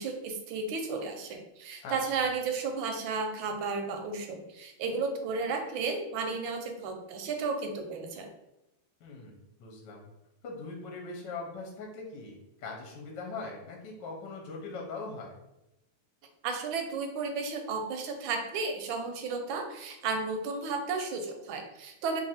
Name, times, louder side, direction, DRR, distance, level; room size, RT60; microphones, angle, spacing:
voice 1, 0.0-8.3 16.4-22.2, right 4 dB, 75° right, 4 dB, 1.3 m, -33 dB
voice 2, 9.0-10.0 10.4-15.4, left 3 dB, 65° left, -1 dB, 1.3 m, -41 dB
3.2 x 2.5 x 4.2 m, 0.89 s
omnidirectional pair, 2.3 m